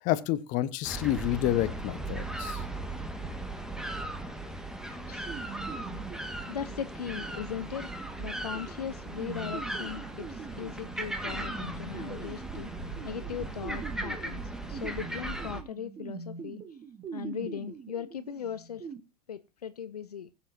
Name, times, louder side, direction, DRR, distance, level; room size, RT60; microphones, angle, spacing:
voice 1, 0.0-2.6, left 13 dB, 40° left, 1.1 m, -29 dB
sound 1, 0.8-15.6, right 2 dB, 5° right, 1.6 m, -37 dB
voice 2, 4.9-5.4 6.5-12.7 13.0-16.6 17.1-18.9 19.3-20.3, left 8 dB, 75° left, 0.6 m, -39 dB
sound 2, 5.3-19.0, right 6 dB, 25° right, 1.5 m, -44 dB
20.5 x 7.2 x 2.7 m
figure-of-eight pair, 90°, 20 cm